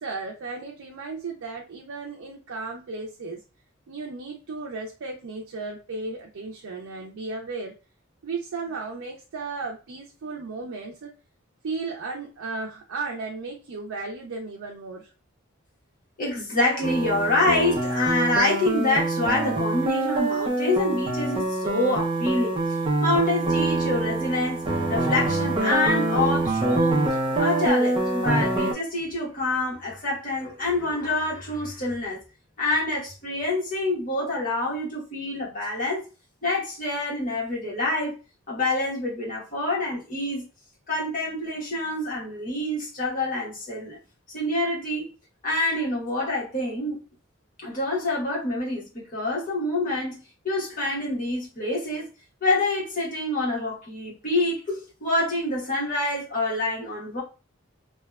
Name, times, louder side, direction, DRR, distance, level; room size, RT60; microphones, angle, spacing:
voice 1, 0.0-3.4 3.9-7.8 8.2-11.1 11.6-15.1, right 3 dB, 85° right, 0.4 m, -35 dB
voice 2, 16.2-22.6 23.0-32.2 32.6-36.0 36.4-38.2 38.5-40.4 40.9-44.0 44.3-45.1 45.4-47.0 47.6-52.1 52.4-57.2, left 2 dB, 45° left, 1.1 m, -26 dB
sound 1, 16.8-28.7, right 2 dB, 25° right, 0.5 m, -25 dB
2.8 x 2.2 x 2.2 m
head